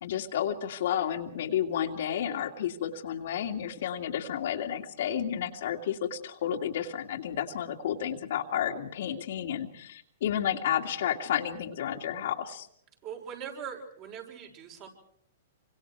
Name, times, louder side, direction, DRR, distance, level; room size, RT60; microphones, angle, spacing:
voice 1, 0.0-12.7, left 9 dB, 70° left, 3 dB, 2.4 m, -31 dB
voice 2, 13.0-14.9, right 7 dB, 40° right, 1 dB, 6.5 m, -41 dB
26.5 x 25.5 x 4.7 m, 0.68 s
hypercardioid pair, 135°, 0 cm